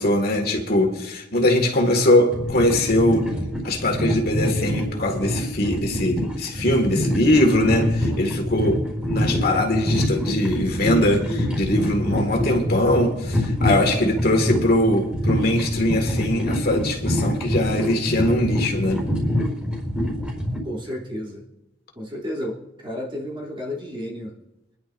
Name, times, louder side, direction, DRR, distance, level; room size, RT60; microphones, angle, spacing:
voice 1, 0.0-3.3 3.6-8.7 9.1-19.0, left 1 dB, 55° left, 2 dB, 2.2 m, -21 dB
sound 1, 2.3-20.6, equal, 5° right, 4.5 m, -25 dB
voice 2, 8.5-9.2 20.6-21.4 21.9-24.4, left 1 dB, 30° right, -4 dB, 3.2 m, -32 dB
25.0 x 11.0 x 2.7 m, 0.95 s
head